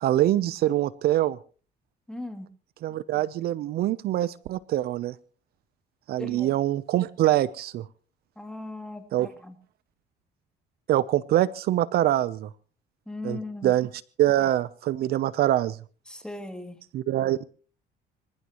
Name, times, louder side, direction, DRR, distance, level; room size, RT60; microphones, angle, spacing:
voice 1, 0.0-1.4 2.8-5.1 6.1-7.9 9.1-9.3 10.9-12.5 13.2-13.9 14.2-15.8 16.9-17.5, right 13 dB, 65° right, 17 dB, 0.7 m, -24 dB
voice 2, 2.1-2.5 6.2-6.5 8.4-9.1 9.4-9.5 13.1-13.7 16.1-16.8, left 2 dB, 5° left, 6 dB, 2.6 m, -37 dB
26.5 x 15.0 x 3.0 m, 0.38 s
cardioid pair, 110°, 17 cm